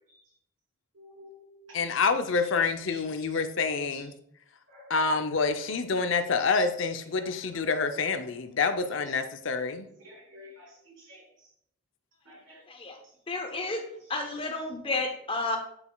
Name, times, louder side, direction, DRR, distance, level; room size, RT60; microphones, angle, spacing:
voice 1, 0.9-1.8 2.9-3.0 4.7-4.9 10.0-11.2 12.3-12.6, left 1 dB, 65° right, -3 dB, 3.0 m, -51 dB
voice 2, 1.7-4.1 4.9-9.9, left 4 dB, 65° left, 8 dB, 0.6 m, -27 dB
voice 3, 13.3-13.8 14.1-15.6, left 3 dB, 25° left, 4 dB, 0.9 m, -31 dB
8.5 x 7.0 x 2.3 m, 0.70 s
head